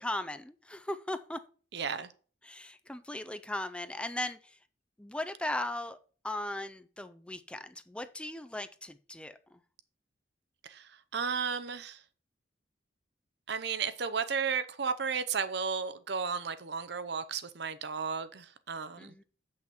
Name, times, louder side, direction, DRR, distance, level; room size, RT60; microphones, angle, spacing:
voice 1, 0.0-1.4 2.4-4.6 5.0-6.0 6.2-9.6 19.0-19.2, left 1 dB, 5° left, 0.4 m, -38 dB
voice 2, 1.7-2.1 10.6-12.0 13.5-19.2, right 6 dB, 65° right, 0.7 m, -34 dB
7.8 x 5.8 x 4.3 m
head